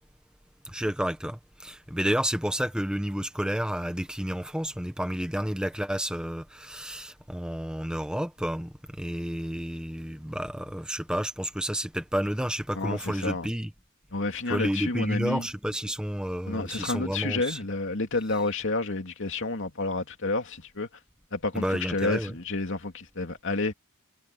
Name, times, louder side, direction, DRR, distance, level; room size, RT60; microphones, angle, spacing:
voice 1, 0.6-13.7 14.5-17.6 21.5-22.3, equal, 5° right, 1.1 m, -30 dB
voice 2, 12.7-13.5 14.1-15.5 16.5-20.9 21.3-23.7, left 3 dB, 60° left, 2.7 m, -30 dB
head